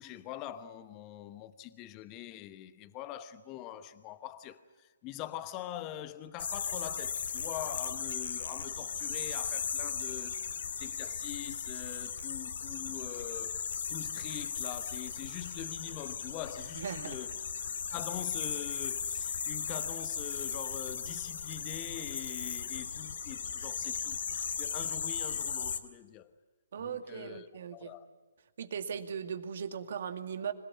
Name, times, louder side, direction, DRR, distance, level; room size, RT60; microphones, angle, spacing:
voice 1, 0.0-13.6 13.9-17.4 17.9-26.3 26.8-28.1, left 12 dB, 25° left, 1.0 m, -44 dB
sound 1, 6.4-25.8, left 6 dB, 60° left, 2.2 m, -37 dB
voice 2, 16.7-17.2 26.7-27.9 28.6-30.5, right 7 dB, 55° right, 2.2 m, -38 dB
26.0 x 17.5 x 9.7 m
hypercardioid pair, 140°, 0 cm